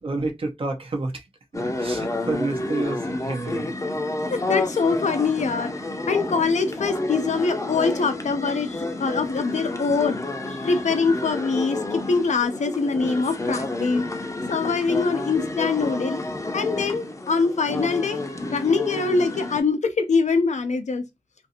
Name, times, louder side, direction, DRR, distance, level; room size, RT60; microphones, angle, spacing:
voice 1, 0.0-1.3 1.5-3.7, right 2 dB, 50° right, 0.5 m, -29 dB
sound 1, 1.5-19.6, left 2 dB, 25° left, 0.5 m, -30 dB
voice 2, 4.3-5.7 6.1-16.2 16.5-18.2 18.5-21.0, left 4 dB, 90° left, 0.4 m, -24 dB
2.5 x 2.4 x 2.7 m
wide cardioid pair, 75°, 12 cm